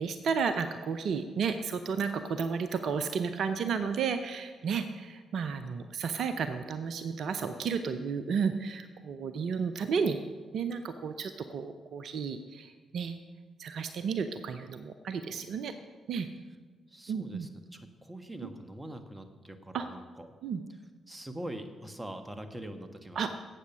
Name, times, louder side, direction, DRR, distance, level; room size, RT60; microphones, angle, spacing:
voice 1, 0.0-10.2 10.5-13.1 13.6-15.7 16.1-16.3 17.1-17.5 19.7-19.9 20.4-20.6 23.2-23.3, right 6 dB, 60° right, 9 dB, 0.6 m, -32 dB
voice 2, 16.9-20.3 21.1-23.3, right 1 dB, 15° right, 8 dB, 1.3 m, -43 dB
12.5 x 8.4 x 5.5 m, 1.4 s
hypercardioid pair, 40°, 0 cm